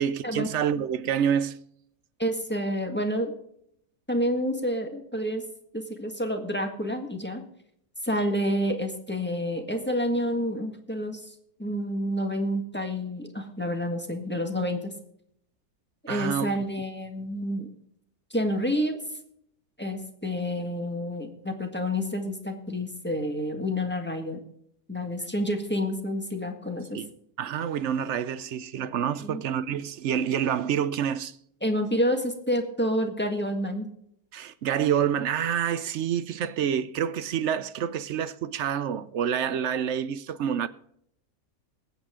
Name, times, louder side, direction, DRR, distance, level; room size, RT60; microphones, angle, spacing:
voice 1, 0.0-1.6 16.1-16.5 26.9-27.1 27.4-31.4 34.3-40.7, right 8 dB, 70° right, 0.7 m, -27 dB
voice 2, 2.2-3.3 4.1-5.4 5.7-7.4 8.0-11.3 11.6-14.9 16.0-17.7 18.3-19.0 19.8-24.4 24.9-27.0 29.2-29.4 31.6-33.9, equal, 5° left, 1.6 m, -29 dB
20.5 x 8.7 x 3.7 m
omnidirectional pair, 1.7 m